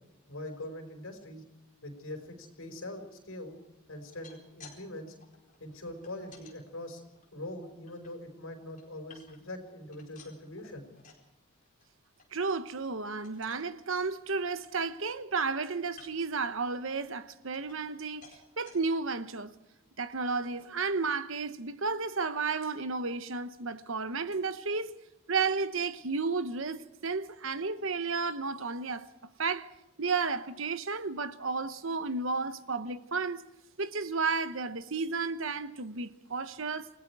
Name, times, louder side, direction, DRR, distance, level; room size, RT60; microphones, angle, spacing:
voice 1, 0.3-1.4 1.8-3.5 3.9-5.1 5.6-7.0 7.3-10.9, left 1 dB, 70° left, 5.1 m, -42 dB
sound 1, 4.0-4.8 5.1-6.6 7.1-8.1 8.6-9.6 9.9-11.3 11.6-11.9 12.2-12.3 12.7-12.9 13.2-13.6 14.1-14.2 14.5-15.3 15.9-16.4 16.9-18.0 18.2-18.8 19.4-19.5 19.8-19.9, left 5 dB, 35° left, 4.5 m, -56 dB
voice 2, 12.3-19.5 20.0-25.0 25.3-29.1 29.4-29.7 30.0-33.4 33.8-36.9, right 4 dB, 65° right, 1.1 m, -32 dB
28.5 x 19.0 x 4.9 m
head